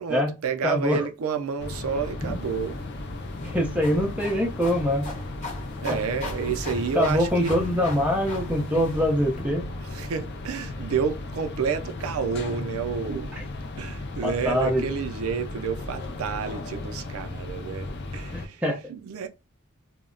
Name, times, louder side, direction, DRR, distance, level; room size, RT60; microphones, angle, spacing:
voice 1, 0.0-2.8 5.8-7.5 9.9-13.3 13.8-18.6 18.9-19.3, right 6 dB, 75° right, 0.4 m, -30 dB
voice 2, 0.6-1.1 3.5-5.1 5.9-6.0 6.9-9.7 14.2-14.8 18.3-18.8, left 1 dB, 5° right, 0.6 m, -24 dB
sound 1, 1.6-18.5, left 2 dB, 50° left, 0.4 m, -36 dB
sound 2, 2.2-9.4, left 2 dB, 35° left, 0.9 m, -40 dB
2.2 x 2.0 x 3.7 m
head